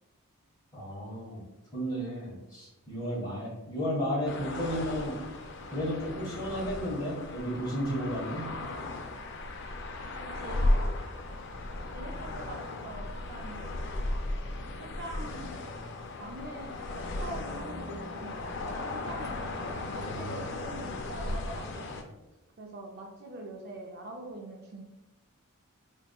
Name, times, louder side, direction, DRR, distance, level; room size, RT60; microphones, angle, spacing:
voice 1, 0.7-1.4 1.7-5.1 5.7-8.4, equal, 20° left, -7 dB, 1.4 m, -33 dB
sound 1, 4.2-22.0, left 2 dB, 50° left, 0.4 m, -35 dB
voice 2, 10.2-10.6 11.9-13.6 14.6-15.6 16.2-18.5 18.8-21.9 22.6-24.8, right 2 dB, 45° right, 1 dB, 0.4 m, -44 dB
3.9 x 3.5 x 2.3 m, 0.98 s
head